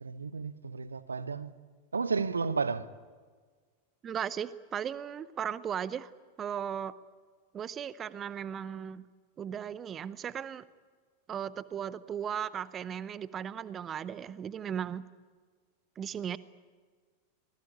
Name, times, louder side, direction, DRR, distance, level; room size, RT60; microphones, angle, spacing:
voice 1, 0.0-1.5 1.9-2.9, right 4 dB, 75° right, 0.9 m, -32 dB
voice 2, 4.0-6.1 6.4-6.9 7.5-9.1 9.4-10.6 11.3-15.0 16.0-16.4, right 8 dB, 25° right, 0.7 m, -36 dB
25.0 x 19.0 x 9.3 m
figure-of-eight pair, 90°, 0 cm